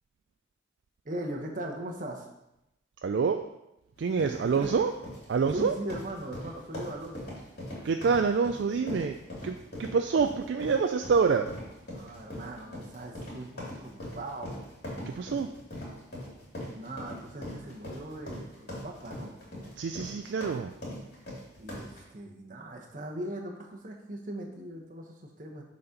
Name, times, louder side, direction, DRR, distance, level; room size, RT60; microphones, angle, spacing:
voice 1, 1.0-2.3 4.2-4.7 5.5-7.4 11.9-14.6 16.7-19.3 21.6-25.6, right 1 dB, 40° right, 2 dB, 1.0 m, -39 dB
voice 2, 3.0-3.5 4.0-4.9 5.3-5.7 7.8-9.2 9.4-11.5 15.1-15.5 19.8-20.7, right 5 dB, 60° right, 6 dB, 0.3 m, -26 dB
sound 1, 4.0-22.0, left 1 dB, 50° left, 2.9 m, -41 dB
6.9 x 4.2 x 5.1 m, 0.89 s
head